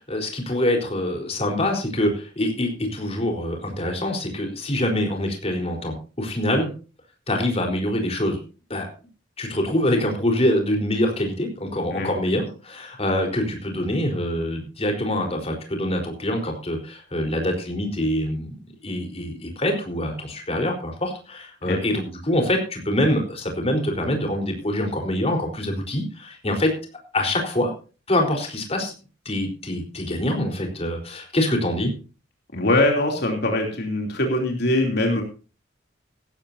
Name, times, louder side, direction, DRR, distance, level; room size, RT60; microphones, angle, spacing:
voice 1, 0.0-6.7 7.3-8.4 8.7-8.9 9.4-18.5 18.8-26.7 27.1-27.7 28.1-28.9 29.2-31.9, left 1 dB, 35° left, 2 dB, 4.1 m, -25 dB
voice 2, 32.5-35.2, left 1 dB, 60° left, 1 dB, 3.0 m, -22 dB
17.0 x 15.0 x 2.7 m, 0.35 s
head